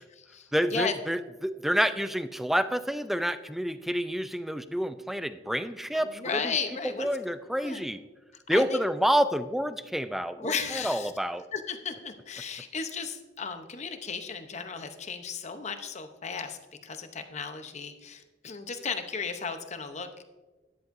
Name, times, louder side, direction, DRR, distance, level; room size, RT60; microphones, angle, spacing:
voice 1, 0.0-0.9 5.9-7.1 7.4-7.8 8.5-8.8 10.4-11.1 11.5-20.2, left 5 dB, 40° left, 8 dB, 0.8 m, -35 dB
voice 2, 0.5-6.5 7.0-8.0 8.5-11.4, equal, ahead, 12 dB, 0.3 m, -28 dB
12.5 x 10.5 x 2.6 m, 1.2 s
head